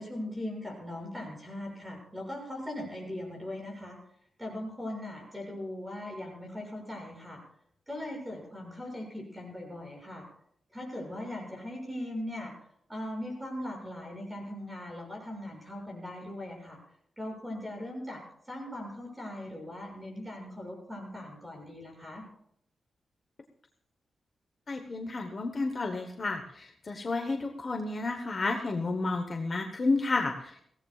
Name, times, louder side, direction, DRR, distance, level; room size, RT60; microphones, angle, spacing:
voice 1, 0.0-4.0 4.4-7.4 7.9-10.2 10.7-12.5 12.9-16.8 17.2-18.2 18.5-22.2, left 1 dB, 10° right, 0 dB, 6.5 m, -39 dB
voice 2, 24.7-30.5, left 3 dB, 35° left, 4 dB, 1.1 m, -31 dB
23.0 x 17.0 x 2.4 m, 0.69 s
wide cardioid pair, 175°, 0 cm